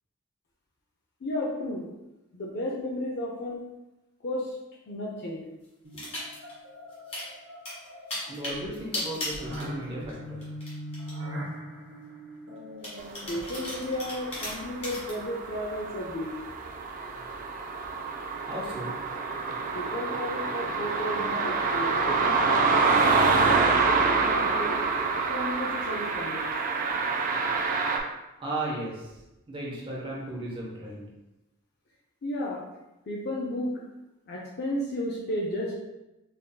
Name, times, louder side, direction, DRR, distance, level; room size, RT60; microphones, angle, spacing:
voice 1, 1.2-1.9 2.3-3.6 4.2-4.6 4.9-5.4 13.3-16.3 19.7-24.7 25.3-26.5 32.2-32.6 33.1-33.7 34.3-35.7, left 1 dB, 50° left, -3 dB, 0.5 m, -33 dB
sound 1, 5.8-14.9, equal, 65° right, 0.8 m, -41 dB
sound 2, 5.9-6.5 6.9-7.3 7.6-10.1 10.4-11.1 11.7-11.8 12.8-15.1, left 1 dB, 30° left, 1.4 m, -36 dB
voice 2, 8.3-10.4 18.4-19.0 28.4-29.2 29.5-31.1, right 1 dB, 25° right, -4 dB, 0.8 m, -35 dB
sound 3, 13.3-28.0, right 4 dB, 40° right, 0.4 m, -27 dB
5.3 x 2.6 x 2.2 m, 0.99 s
head